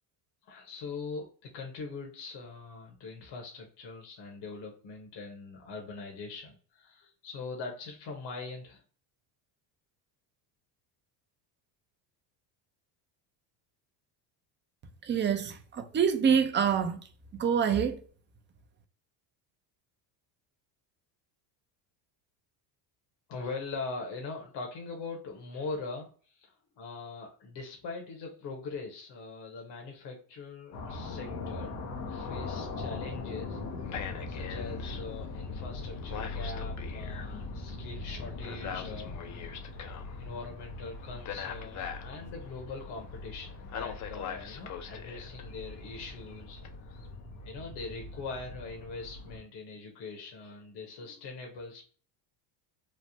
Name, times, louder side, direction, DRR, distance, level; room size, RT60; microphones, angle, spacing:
voice 1, 0.4-8.8 23.3-31.8 32.1-33.6 34.3-39.5 40.2-47.0 47.4-51.9, left 4 dB, 55° left, 1.0 m, -42 dB
voice 2, 15.0-17.0 17.4-18.0, right 7 dB, 25° right, 0.4 m, -26 dB
sound 1, 30.7-49.4, left 3 dB, 90° left, 0.9 m, -41 dB
sound 2, 33.8-40.2 41.3-42.1 43.7-45.5 46.6-46.7, left 7 dB, 40° left, 0.5 m, -41 dB
3.3 x 2.0 x 2.6 m
supercardioid pair, 95°, 50 cm